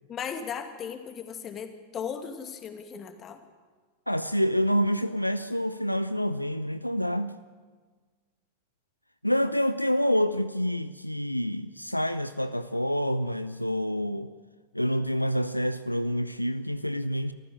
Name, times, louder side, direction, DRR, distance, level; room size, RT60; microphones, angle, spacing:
voice 1, 0.1-3.4, left 7 dB, 30° left, 7 dB, 2.4 m, -37 dB
voice 2, 4.1-7.3 9.2-14.3 14.7-17.3, equal, 90° left, 12 dB, 0.7 m, -27 dB
24.5 x 14.5 x 8.7 m, 1.5 s
figure-of-eight pair, 90°, 0 cm